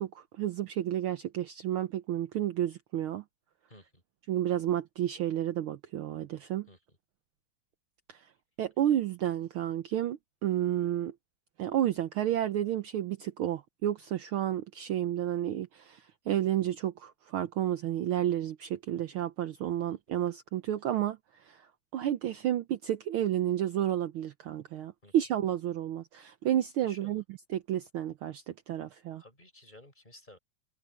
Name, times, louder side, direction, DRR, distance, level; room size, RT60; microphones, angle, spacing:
voice 1, 0.0-3.2 4.3-6.7 8.1-8.3 8.6-11.1 11.6-21.6 21.9-27.2 27.5-29.2, right 11 dB, 75° right, 1.2 m, -31 dB
voice 2, 3.7-4.0 6.7-6.8 19.9-20.0 25.0-25.1 26.8-27.2 29.2-30.4, left 1 dB, 15° left, 6.4 m, -54 dB
omnidirectional pair, 3.3 m